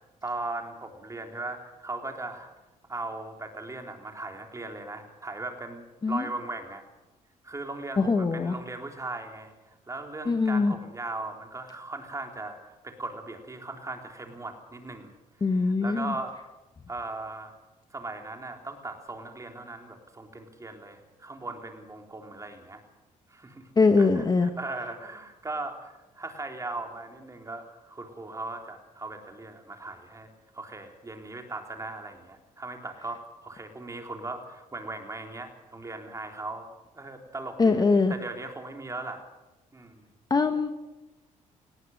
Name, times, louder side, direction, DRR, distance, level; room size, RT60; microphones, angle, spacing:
voice 1, 0.2-2.5 2.9-6.8 7.4-9.5 9.9-15.1 15.4-16.4 16.9-17.5 17.9-22.8 23.3-23.7 24.0-36.7 36.9-37.8 38.1-39.2 39.7-40.0, right 2 dB, 20° right, 4 dB, 3.6 m, -38 dB
voice 2, 8.0-8.6 10.2-10.7 15.4-16.1 23.8-24.5 37.6-38.1 40.3-40.7, left 4 dB, 30° left, 8 dB, 1.4 m, -22 dB
18.5 x 17.5 x 7.9 m, 1.0 s
cardioid pair, 95°, 14 cm